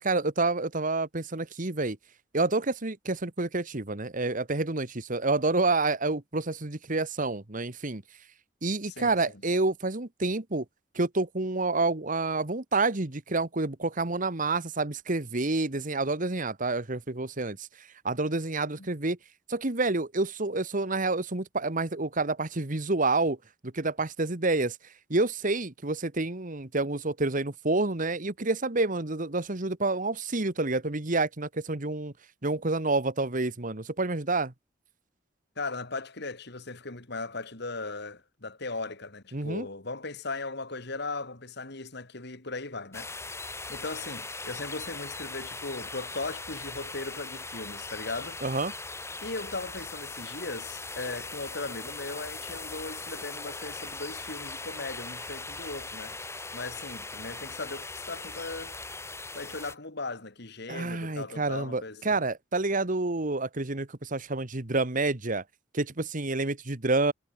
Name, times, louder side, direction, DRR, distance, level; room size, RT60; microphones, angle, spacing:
voice 1, 0.0-2.0 2.3-8.0 8.6-10.6 10.9-17.7 18.0-19.2 19.5-23.4 23.6-24.8 25.1-32.1 32.4-34.5 39.3-39.7 48.4-48.7 60.7-65.4 65.7-67.1, right 3 dB, 45° right, 1.6 m, -28 dB
voice 2, 8.9-9.2 18.8-18.9 35.6-43.1 43.7-48.4 49.2-56.2 56.5-58.8 59.3-62.3, left 3 dB, 60° left, 2.8 m, -38 dB
sound 1, 42.9-59.8, left 3 dB, 15° left, 5.3 m, -40 dB
head